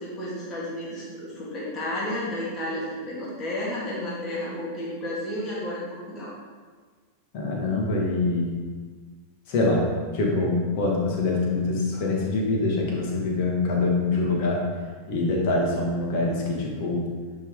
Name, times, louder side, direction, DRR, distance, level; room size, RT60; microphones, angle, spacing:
voice 1, 0.0-6.3, left 1 dB, 25° left, -6 dB, 2.3 m, -32 dB
voice 2, 7.3-8.5 9.5-9.9 10.1-14.6 15.1-17.1, left 2 dB, 45° left, -2 dB, 2.1 m, -24 dB
10.0 x 4.6 x 3.8 m, 1.5 s
figure-of-eight pair, 90°, 0 cm